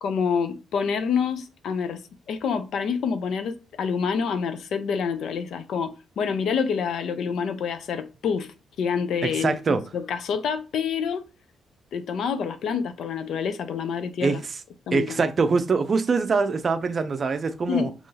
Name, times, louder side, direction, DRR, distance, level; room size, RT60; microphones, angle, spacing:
voice 1, 0.0-2.0 2.3-11.3 11.9-14.4 14.9-15.3 17.7-17.9, left 6 dB, 65° left, 0.5 m, -27 dB
voice 2, 9.2-9.8 14.2-14.4 14.9-17.9, right 4 dB, 35° right, 0.5 m, -23 dB
3.0 x 2.6 x 3.8 m
cardioid pair, 120°, 0 cm